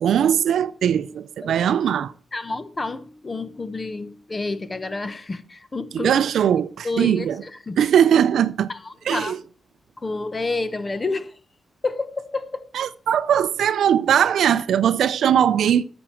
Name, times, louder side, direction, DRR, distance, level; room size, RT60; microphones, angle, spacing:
voice 1, 0.0-2.1 5.9-7.4 7.8-8.7 9.1-9.4 12.7-15.8, right 9 dB, 85° right, 0.5 m, -20 dB
voice 2, 2.3-6.2 6.8-7.8 8.7-9.4 10.0-11.4 11.8-12.7, left 3 dB, 30° left, 1.0 m, -29 dB
11.0 x 7.3 x 4.5 m
cardioid pair, 85°, 0 cm